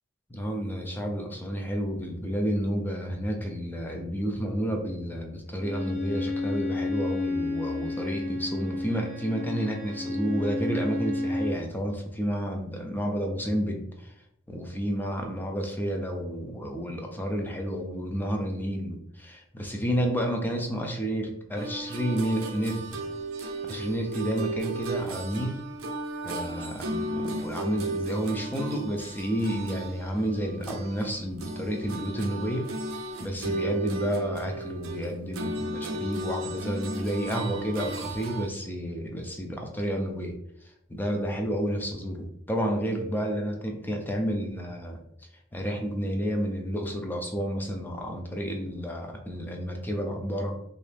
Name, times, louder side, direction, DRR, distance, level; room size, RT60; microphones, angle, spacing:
voice 1, 0.3-14.1 14.5-23.0 23.4-25.6 26.2-32.7 33.2-40.4 40.6-45.0 45.5-50.6, equal, 10° left, 2 dB, 0.5 m, -30 dB
Bowed string instrument, 5.6-11.6, left 2 dB, 40° left, 0.9 m, -31 dB
sound 1, 21.6-31.1 31.4-38.5, right 2 dB, 80° right, 0.5 m, -35 dB
2.9 x 2.7 x 3.3 m, 0.71 s
head